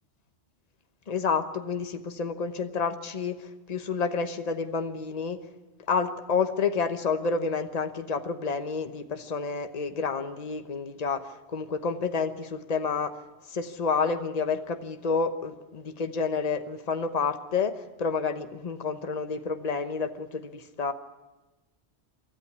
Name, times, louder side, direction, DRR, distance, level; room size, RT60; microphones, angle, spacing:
voice 1, 1.1-5.4 5.9-13.2 13.5-20.9, left 5 dB, 40° left, 8 dB, 1.1 m, -29 dB
24.0 x 14.0 x 9.7 m, 1.1 s
omnidirectional pair, 1.1 m